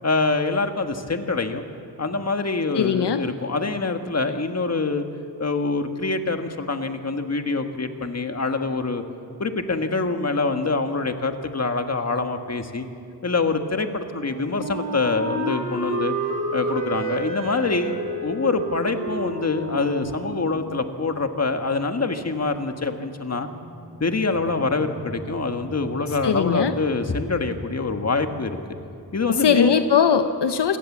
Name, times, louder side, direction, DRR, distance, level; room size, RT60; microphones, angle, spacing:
voice 1, 0.0-1.6 2.0-5.0 5.4-9.0 9.4-12.9 13.2-16.1 16.5-23.5 24.0-28.6 29.1-29.7, left 3 dB, 40° left, 6 dB, 1.6 m, -25 dB
voice 2, 2.7-3.2 26.1-26.8 29.3-30.8, left 7 dB, 75° left, 8 dB, 1.0 m, -20 dB
Wind instrument woodwind instrument, 14.1-21.0, right 2 dB, 45° right, 4.9 m, -30 dB
sound 1, 16.3-21.7 22.0-22.1 23.3-29.9, equal, 90° right, 6.4 m, -45 dB
27.0 x 17.5 x 7.4 m, 2.5 s
wide cardioid pair, 95°, 41 cm